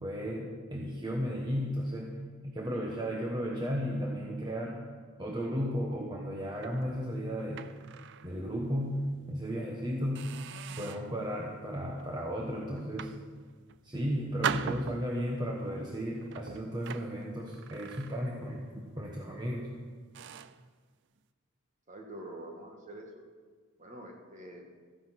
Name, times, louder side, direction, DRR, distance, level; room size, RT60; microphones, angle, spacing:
voice 1, 0.0-2.1 2.4-4.8 5.2-7.7 8.2-10.3 10.8-13.1 13.8-19.7, equal, 20° right, -2 dB, 1.2 m, -34 dB
sound 1, 6.6-8.3 8.8-9.0 9.5-9.7 10.2-11.2 11.7-12.1 12.8-13.8 14.4-15.4 16.2-18.6 18.8-19.1 19.7-19.8 20.1-20.6, right 7 dB, 55° right, 0.5 m, -40 dB
voice 2, 21.9-23.1 23.8-24.7, right 1 dB, 35° right, 1 dB, 1.9 m, -45 dB
14.0 x 10.5 x 6.1 m, 1.5 s
head